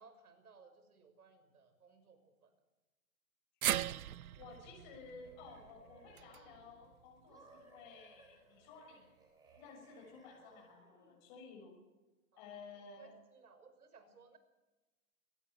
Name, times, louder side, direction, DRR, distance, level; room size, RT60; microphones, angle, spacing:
voice 1, 0.0-2.5 12.3-12.4 12.8-14.4, right 4 dB, 90° right, 9 dB, 6.0 m, -62 dB
sound 1, 3.6-7.9 8.2-8.3 9.5-9.6, right 12 dB, 75° right, 0.8 m, -41 dB
voice 2, 4.4-9.1 9.5-11.7 12.4-13.1, left 4 dB, 30° left, 0 dB, 6.7 m, -54 dB
sound 2, 4.5-6.8 7.3-11.2, right 2 dB, 10° right, 5.1 m, -64 dB
23.5 x 19.0 x 8.3 m, 1.1 s
hypercardioid pair, 165°, 43 cm